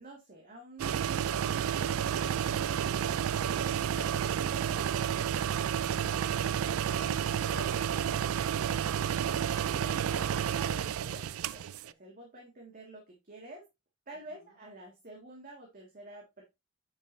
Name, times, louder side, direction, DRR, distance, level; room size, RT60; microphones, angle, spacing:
voice 1, 0.0-1.8 6.0-6.5 9.7-13.6 14.1-16.4, right 2 dB, 40° right, -1 dB, 1.9 m, -49 dB
sound 1, 0.8-11.9, right 8 dB, 80° right, 0.4 m, -31 dB
voice 2, 6.9-8.9 14.1-14.5, left 4 dB, 75° left, -5 dB, 1.9 m, -51 dB
8.7 x 6.1 x 2.6 m, 0.22 s
head